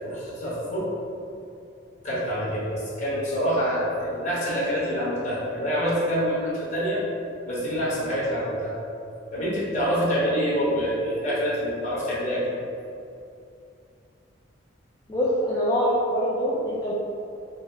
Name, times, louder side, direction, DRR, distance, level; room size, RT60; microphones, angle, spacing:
voice 1, 0.0-0.9 2.0-7.0 7.5-8.7 9.3-12.5, equal, 40° left, -9 dB, 1.5 m, -26 dB
voice 2, 15.1-16.9, equal, 20° left, -9 dB, 0.5 m, -24 dB
4.5 x 2.2 x 4.6 m, 2.5 s
head